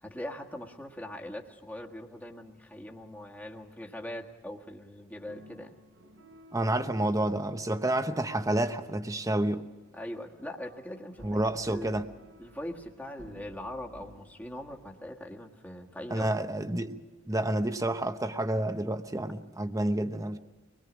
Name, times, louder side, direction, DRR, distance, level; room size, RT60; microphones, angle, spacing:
voice 1, 0.0-5.7 9.9-11.4 11.7-11.9 12.4-16.3, left 1 dB, 10° left, 1.6 m, -41 dB
sound 1, 5.3-15.1, equal, 90° right, 4.2 m, -55 dB
voice 2, 6.5-9.7 11.2-12.1 16.1-17.0 17.3-20.4, right 1 dB, 15° right, 0.9 m, -29 dB
25.0 x 21.0 x 6.2 m
head